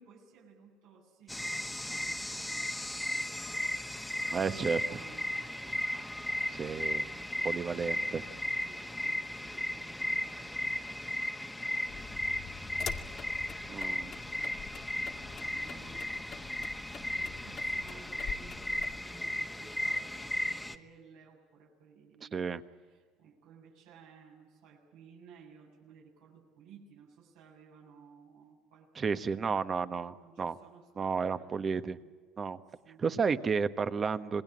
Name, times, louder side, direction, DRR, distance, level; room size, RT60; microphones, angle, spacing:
voice 1, 0.0-8.3 8.7-16.1 16.9-29.5 30.1-32.0 32.8-33.5, right 6 dB, 85° right, -3 dB, 7.2 m, -58 dB
sound 1, 1.3-20.8, left 1 dB, 5° left, 1.6 m, -36 dB
voice 2, 4.3-4.8 6.5-7.1 7.4-8.2 13.7-14.1 22.2-22.6 29.0-30.6 31.0-32.0 32.4-32.6 33.0-34.4, right 5 dB, 35° right, 11 dB, 1.3 m, -32 dB
sound 2, 11.9-19.0, left 7 dB, 50° left, 2.2 m, -45 dB
27.0 x 20.5 x 8.8 m, 1.5 s
supercardioid pair, 90°, 0 cm